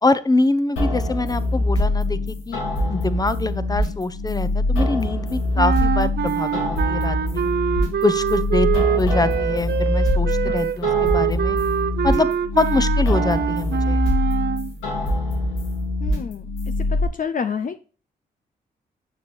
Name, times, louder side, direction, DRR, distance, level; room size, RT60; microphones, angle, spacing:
voice 1, 0.0-2.6 2.9-7.5 8.0-11.6 12.0-12.3 12.6-14.0, left 2 dB, 20° left, 14 dB, 0.9 m, -24 dB
sound 1, 0.8-17.0, left 1 dB, 85° left, 1.8 m, -23 dB
sound 2, 5.6-14.7, right 10 dB, 60° right, 0.6 m, -24 dB
voice 2, 16.0-16.5 16.9-17.8, left 6 dB, 45° left, 9 dB, 0.6 m, -28 dB
9.2 x 6.9 x 3.3 m, 0.38 s
hypercardioid pair, 40°, 20 cm